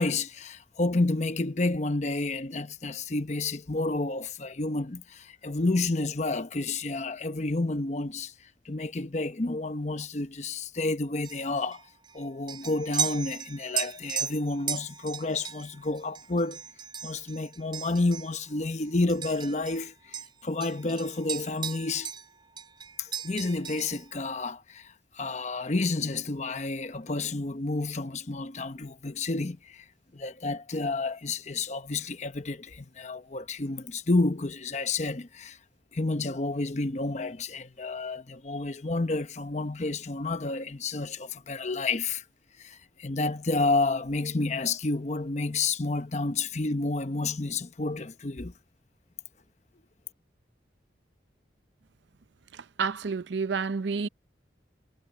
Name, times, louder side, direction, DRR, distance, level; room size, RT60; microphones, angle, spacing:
voice 1, 0.0-8.3 8.7-11.8 12.1-16.6 17.0-22.1 23.0-29.8 30.1-35.6 35.9-42.2 42.6-48.5, left 3 dB, 40° left, 0.9 m, -30 dB
sound 1, 11.2-19.9 20.1-22.3 22.6-24.1, right 7 dB, 25° right, 5.4 m, -37 dB
voice 2, 52.8-54.1, right 5 dB, 80° right, 0.6 m, -29 dB
head